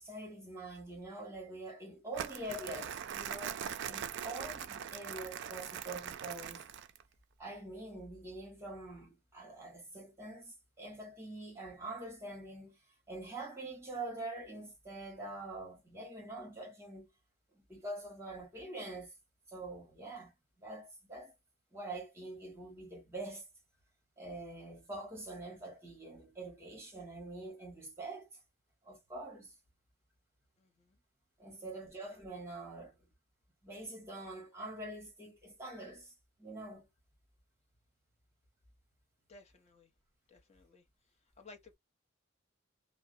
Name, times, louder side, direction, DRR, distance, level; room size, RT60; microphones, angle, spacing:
voice 1, 0.0-3.6 3.8-6.7 7.4-12.8 13.1-17.1 17.5-19.1 19.5-21.3 21.7-23.5 24.2-28.3 28.8-29.5 31.4-33.1 33.6-36.1 36.4-36.9, right 2 dB, 15° right, 1.2 m, -45 dB
Crumpling crinkling, 2.1-7.0, right 9 dB, 60° right, 0.3 m, -41 dB
voice 2, 30.6-31.0 31.5-31.6 39.3-39.9 40.3-40.9 41.4-41.7, left 3 dB, 35° left, 0.7 m, -58 dB
2.5 x 2.0 x 2.4 m
head